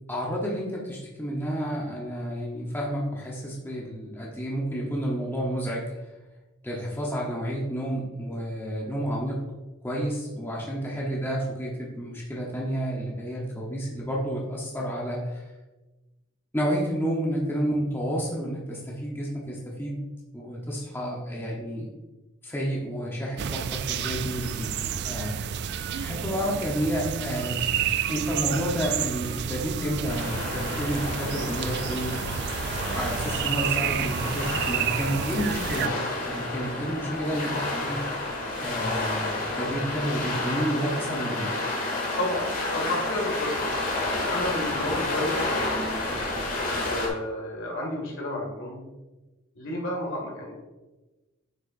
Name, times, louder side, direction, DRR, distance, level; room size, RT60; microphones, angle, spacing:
voice 1, 0.1-5.9 6.6-9.4 9.8-15.4 16.5-20.0 20.3-21.9 22.4-25.4 26.0-27.6 28.1-32.1 32.9-38.3 38.6-41.5, equal, 10° left, -3 dB, 0.9 m, -30 dB
sound 1, 23.4-35.9, right 8 dB, 55° right, 0.3 m, -30 dB
sound 2, 30.1-47.1, left 2 dB, 40° left, 1.9 m, -30 dB
voice 2, 42.2-43.7 44.3-45.4 46.5-48.8 49.6-50.5, left 1 dB, 65° left, -2 dB, 2.1 m, -31 dB
7.7 x 6.0 x 2.6 m, 1.1 s
head